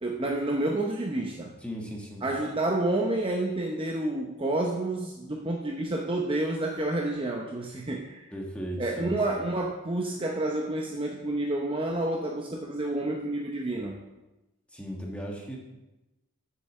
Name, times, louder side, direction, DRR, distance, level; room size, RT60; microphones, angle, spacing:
voice 1, 0.0-1.5 2.2-8.3 8.8-14.0, right 2 dB, 25° right, 1 dB, 0.7 m, -29 dB
voice 2, 1.6-2.2 8.3-9.2 14.7-15.6, equal, 5° left, -2 dB, 1.6 m, -36 dB
7.7 x 6.7 x 6.5 m, 1.0 s
head